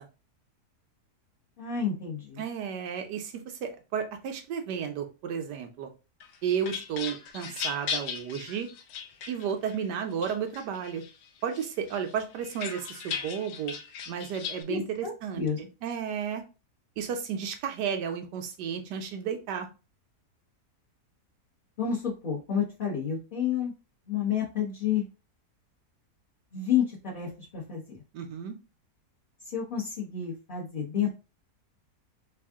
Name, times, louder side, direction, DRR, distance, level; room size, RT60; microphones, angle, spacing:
voice 1, 1.6-2.4 14.7-15.6 21.8-23.7 24.1-25.1 26.5-28.0 29.5-31.1, left 8 dB, 35° left, -5 dB, 1.0 m, -30 dB
voice 2, 2.4-5.9 6.4-8.7 9.3-11.0 11.4-13.8 14.1-16.4 17.0-19.7 28.1-28.6, right 7 dB, 85° right, 6 dB, 1.3 m, -33 dB
sound 1, 6.2-9.8 10.2-11.1 11.5-14.6, left 7 dB, 90° left, 1.2 m, -37 dB
3.6 x 2.4 x 3.5 m, 0.31 s
omnidirectional pair, 1.7 m